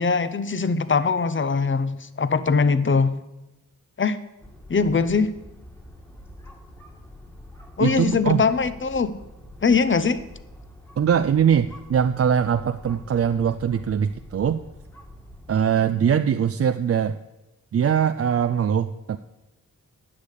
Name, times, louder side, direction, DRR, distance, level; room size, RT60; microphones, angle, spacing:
voice 1, 0.0-3.1 4.0-4.2 4.7-5.3 7.8-9.1 9.6-10.2, left 4 dB, 35° left, 14 dB, 0.8 m, -21 dB
sound 1, 4.4-15.6, left 1 dB, 5° left, 2.0 m, -45 dB
voice 2, 7.8-8.4 11.0-14.6 15.5-17.1 17.7-19.2, right 8 dB, 40° right, 9 dB, 0.5 m, -22 dB
9.9 x 6.7 x 8.4 m, 0.97 s
cardioid pair, 65°, 35 cm